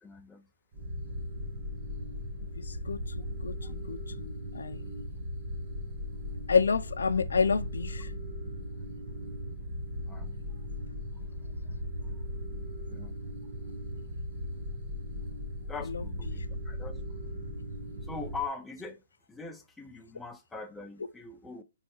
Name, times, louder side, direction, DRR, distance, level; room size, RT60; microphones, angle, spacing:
voice 1, 0.0-0.5 3.6-3.7 9.5-9.6 10.1-10.4 11.6-11.7 12.9-13.2 15.7-17.3 18.0-19.0 19.3-21.6, left 4 dB, 5° left, 0.3 m, -42 dB
sound 1, 0.7-18.5, left 1 dB, 25° right, 1.1 m, -38 dB
voice 2, 2.6-5.1 6.5-8.1 15.9-16.0 16.3-16.4, left 5 dB, 80° left, 0.4 m, -30 dB
4.5 x 3.2 x 2.9 m
hypercardioid pair, 160°, 0 cm